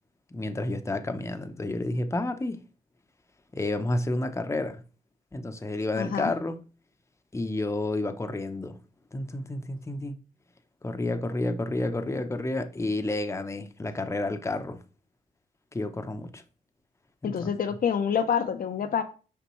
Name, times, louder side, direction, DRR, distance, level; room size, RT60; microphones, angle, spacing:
voice 1, 0.3-2.6 3.5-4.8 5.3-6.6 7.3-8.8 9.1-10.1 10.8-14.8 15.7-16.4 17.2-17.5, left 2 dB, 20° left, 0.8 m, -30 dB
voice 2, 5.9-6.3 17.2-19.0, left 7 dB, 70° left, 0.7 m, -27 dB
6.9 x 5.1 x 3.1 m
cardioid pair, 80°, 15 cm